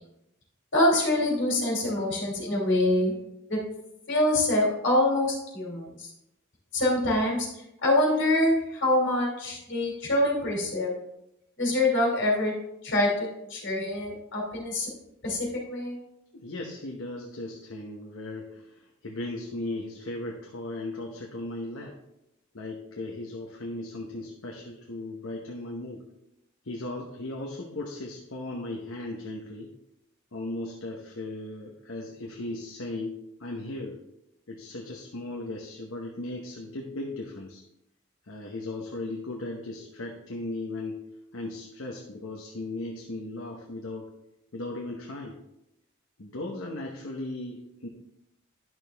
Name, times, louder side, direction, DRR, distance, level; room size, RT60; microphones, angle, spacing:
voice 1, 0.7-3.1 3.5-3.6 4.1-6.1 6.7-7.5 7.8-10.9 11.6-12.5 12.8-14.9 15.2-16.0, left 1 dB, 55° left, -2 dB, 2.8 m, -25 dB
voice 2, 16.3-22.0 22.5-26.0 26.6-29.7 30.3-34.0 34.5-37.6 38.3-41.0 41.3-44.1 44.5-45.4 46.2-47.9, left 2 dB, 75° left, 0 dB, 1.0 m, -37 dB
10.5 x 6.4 x 3.4 m, 0.84 s
head